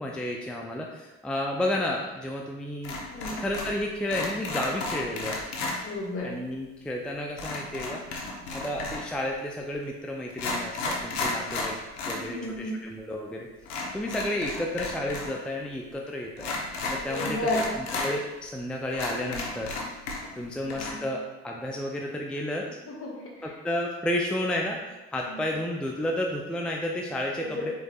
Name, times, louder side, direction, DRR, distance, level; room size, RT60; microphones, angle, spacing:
voice 1, 0.0-3.0 3.4-5.4 6.2-8.0 8.5-11.7 12.1-13.5 13.9-16.5 16.9-17.5 17.8-19.7 20.4-22.7 23.4-27.7, left 1 dB, 5° left, 0 dB, 0.4 m, -31 dB
sound 1, 2.8-3.8 4.1-5.8 7.4-9.1 9.8-9.9 10.3-12.2 12.5-12.6 13.6-15.3 15.6-15.7 16.4-18.1 18.6-18.7 18.9-20.4 20.7-20.9, left 3 dB, 80° left, 0.9 m, -33 dB
voice 2, 3.1-3.4 5.8-6.3 12.0-12.8 17.1-17.6 20.6-21.0 22.8-23.5 25.2-25.4 27.4-27.5, left 1 dB, 45° left, -2 dB, 1.4 m, -33 dB
4.7 x 4.1 x 2.3 m, 1.1 s
hypercardioid pair, 70°, 32 cm